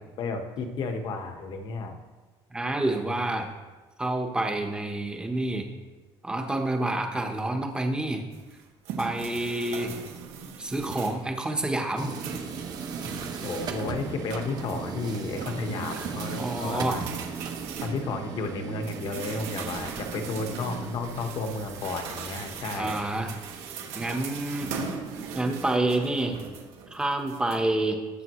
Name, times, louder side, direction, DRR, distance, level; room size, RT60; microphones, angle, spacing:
voice 1, 0.2-2.0 13.4-17.0 17.8-23.0, left 3 dB, 50° left, 5 dB, 1.3 m, -32 dB
voice 2, 2.5-3.5 4.0-5.7 6.2-8.2 9.0-10.0 10.6-12.4 16.3-17.0 22.7-23.3 23.9-24.7 25.3-26.4 26.9-28.0, right 2 dB, 10° right, 3 dB, 1.1 m, -28 dB
sound 1, 8.3-11.3 11.7-18.5 18.8-27.6, right 6 dB, 85° right, 2.0 m, -40 dB
sound 2, 12.0-26.2, right 5 dB, 40° right, 1.0 m, -39 dB
20.0 x 7.4 x 3.1 m, 1.3 s
cardioid pair, 160°, 11 cm